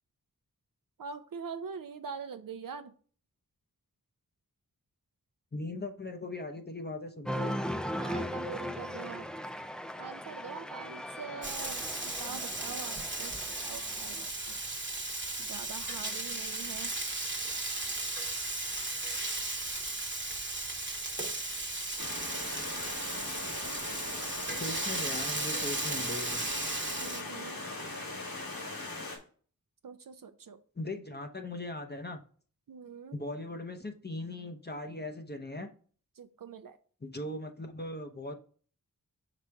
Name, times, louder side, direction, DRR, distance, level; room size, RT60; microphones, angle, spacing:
voice 1, 1.0-2.9 8.0-9.3 10.0-14.6 15.4-16.9 27.0-27.6 29.8-30.6 32.7-33.1 36.2-36.8, right 6 dB, 70° right, 8 dB, 0.5 m, -44 dB
voice 2, 5.5-7.5 24.6-26.4 30.8-32.2 33.1-35.7 37.0-38.3, left 2 dB, 30° left, 5 dB, 0.7 m, -39 dB
Cheering, 7.2-14.3, equal, ahead, 0.4 m, -38 dB
Frying (food), 11.4-27.2, right 2 dB, 35° right, 1.1 m, -36 dB
Stream, 22.0-29.2, left 2 dB, 80° left, 2.0 m, -39 dB
5.6 x 5.0 x 3.4 m, 0.43 s
wide cardioid pair, 75°, 34 cm